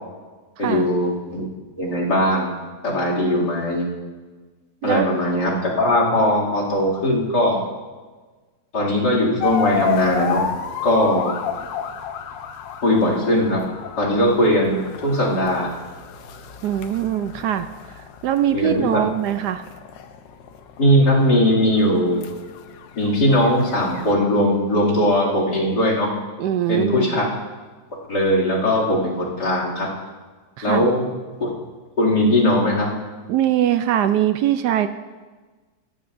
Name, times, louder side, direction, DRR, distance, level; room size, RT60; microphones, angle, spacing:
voice 1, 0.6-1.5 1.8-2.6 2.8-3.9 4.8-7.7 8.7-10.4 10.8-11.3 12.8-13.6 14.0-15.7 18.5-19.0 20.8-22.2 23.0-26.1 26.7-27.2 28.1-29.9 30.6-31.0 31.4-31.5 32.0-32.9, left 1 dB, 65° left, -2 dB, 3.1 m, -19 dB
sound 1, 9.4-24.1, left 7 dB, 85° left, 1.5 m, -31 dB
voice 2, 16.6-19.6 26.4-27.2 30.6-30.9 33.3-34.9, right 11 dB, 75° right, 10 dB, 1.1 m, -22 dB
16.0 x 14.5 x 2.6 m, 1.3 s
omnidirectional pair, 1.9 m